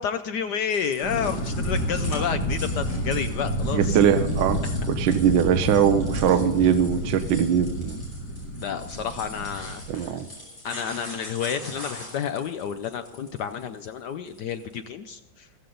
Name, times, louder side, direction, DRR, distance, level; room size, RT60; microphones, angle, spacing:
voice 1, 0.0-4.0 4.6-4.8 8.6-10.2 10.6-15.5, left 7 dB, 70° left, 9 dB, 1.0 m, -30 dB
sound 1, 0.7-14.8, left 1 dB, 25° left, 5.8 m, -43 dB
sound 2, 1.0-10.0, equal, 50° left, 3.8 m, -29 dB
voice 2, 3.7-4.6 5.0-8.0 9.9-10.3, right 8 dB, 70° right, 8 dB, 1.3 m, -21 dB
15.0 x 14.5 x 3.8 m, 1.0 s
omnidirectional pair, 2.3 m